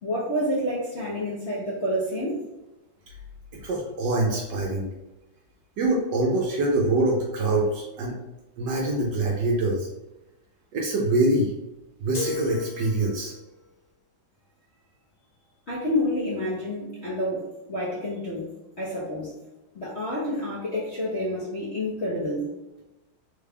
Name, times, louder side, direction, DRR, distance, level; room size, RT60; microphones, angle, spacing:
voice 1, 0.0-2.4 15.7-18.5 18.8-19.3 19.7-22.5, left 1 dB, 55° left, -8 dB, 0.8 m, -28 dB
voice 2, 3.6-4.9 5.8-8.1 8.6-9.9 10.7-11.5 12.0-13.3, right 2 dB, 70° right, -2 dB, 1.1 m, -24 dB
sound 1, 12.1-13.5, left 3 dB, 75° left, 1.3 m, -34 dB
3.6 x 2.3 x 3.4 m, 1.0 s
omnidirectional pair, 2.2 m